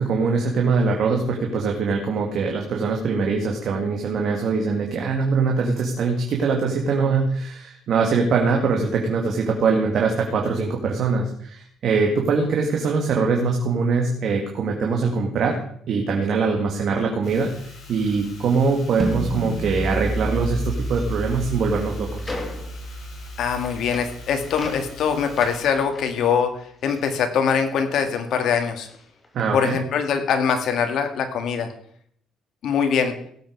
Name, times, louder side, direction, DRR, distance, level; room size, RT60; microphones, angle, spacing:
voice 1, 0.0-15.6 15.9-22.3 29.3-29.8, right 4 dB, 60° right, 1 dB, 2.2 m, -22 dB
sound 1, 17.2-25.7, left 5 dB, 50° left, 6.5 m, -44 dB
sound 2, 19.0-25.0, right 2 dB, 20° right, 1.6 m, -30 dB
sound 3, 20.6-28.1 28.4-29.8, left 2 dB, 20° left, 2.3 m, -42 dB
voice 2, 23.4-26.5 26.8-28.9 29.5-31.7 32.6-33.2, left 6 dB, 65° left, 6 dB, 2.2 m, -22 dB
17.5 x 8.1 x 4.8 m, 0.64 s
cardioid pair, 115°, 0 cm